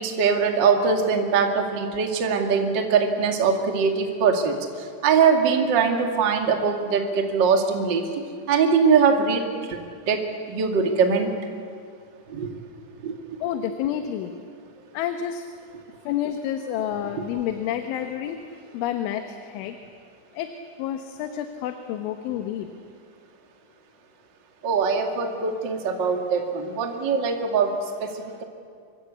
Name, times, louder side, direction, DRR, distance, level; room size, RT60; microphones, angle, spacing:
voice 1, 0.0-4.6 5.0-8.0 8.5-9.4 9.7-9.8 10.1-11.3 12.3-12.5 13.0-13.2 24.6-27.7 28.0-28.1, right 5 dB, 40° right, 3 dB, 1.6 m, -22 dB
voice 2, 13.4-14.3 14.9-15.5 16.1-18.4 18.7-19.8 20.4-20.5 20.8-22.7, left 10 dB, 90° left, 6 dB, 3.6 m, -29 dB
25.0 x 23.5 x 8.3 m, 2.2 s
omnidirectional pair, 5.4 m